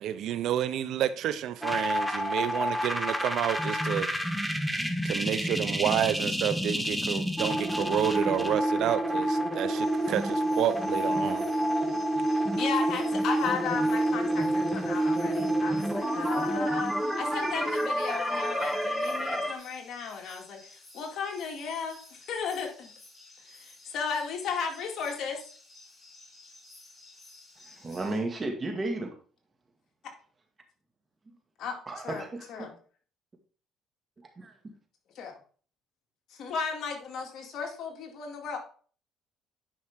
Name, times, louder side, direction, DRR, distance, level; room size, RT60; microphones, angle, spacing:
voice 1, 0.0-4.1 5.0-11.4, right 10 dB, 70° right, 0.6 m, -30 dB
sound 1, 1.6-19.5, right 1 dB, ahead, 1.0 m, -28 dB
sound 2, 9.7-28.2, left 3 dB, 25° left, 4.7 m, -53 dB
voice 2, 12.6-22.9 23.5-25.4 31.6-31.8 32.0-32.2 32.5-32.7 35.2-35.4 36.3-38.6, left 6 dB, 60° left, 2.2 m, -35 dB
voice 3, 27.6-29.1 31.9-32.7 34.2-34.7, right 2 dB, 25° right, 1.9 m, -34 dB
10.0 x 5.6 x 3.6 m
cardioid pair, 105°, 0 cm